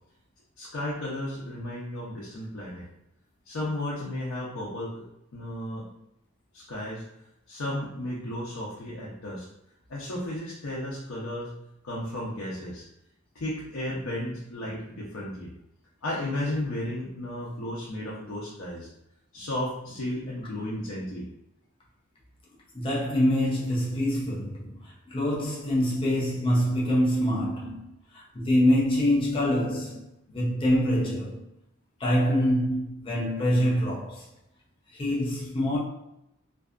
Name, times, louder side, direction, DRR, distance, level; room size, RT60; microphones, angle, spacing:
voice 1, 0.6-2.9 3.5-5.0 5.3-5.9 6.5-7.0 7.5-9.5 9.9-11.5 11.8-12.8 13.3-15.5 16.0-18.9 19.3-21.3, left 1 dB, 80° left, 0.6 m, -34 dB
voice 2, 22.7-30.1 30.3-31.4 32.0-34.3 34.9-35.8, equal, 25° left, 0.5 m, -25 dB
2.6 x 2.3 x 2.3 m
head